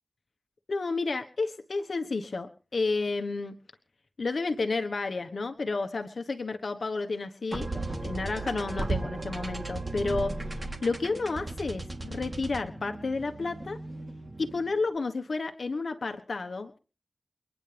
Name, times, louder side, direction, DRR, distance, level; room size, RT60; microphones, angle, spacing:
voice 1, 0.7-3.5 4.2-7.7 8.0-13.8 14.4-16.8, left 3 dB, 65° left, 6 dB, 1.3 m, -31 dB
sound 1, 7.5-14.8, right 2 dB, 30° right, 3.1 m, -36 dB
29.5 x 10.0 x 3.4 m, 0.36 s
wide cardioid pair, 80°, 0 cm